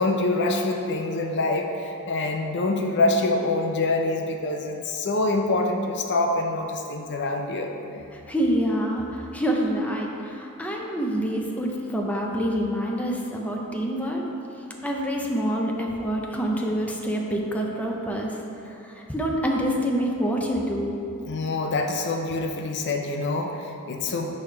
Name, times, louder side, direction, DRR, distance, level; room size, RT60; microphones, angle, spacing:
voice 1, 0.0-8.0 21.3-24.3, left 2 dB, 55° left, 3 dB, 0.6 m, -25 dB
voice 2, 8.1-14.2 14.8-18.4 18.7-21.1, equal, 5° left, -1 dB, 0.5 m, -26 dB
8.4 x 3.3 x 5.7 m, 2.8 s
head